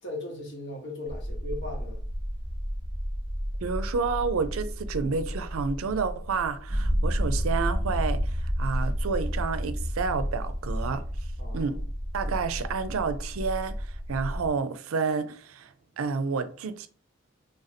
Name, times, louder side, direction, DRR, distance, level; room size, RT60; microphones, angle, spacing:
voice 1, 0.0-2.0 11.4-11.8, left 1 dB, 55° left, 1.2 m, -38 dB
sound 1, 1.1-14.5, equal, 75° left, 1.4 m, -31 dB
voice 2, 3.6-11.1 11.5-11.8 12.1-15.7 16.0-16.9, right 5 dB, 90° right, 0.4 m, -30 dB
3.4 x 2.6 x 4.1 m
head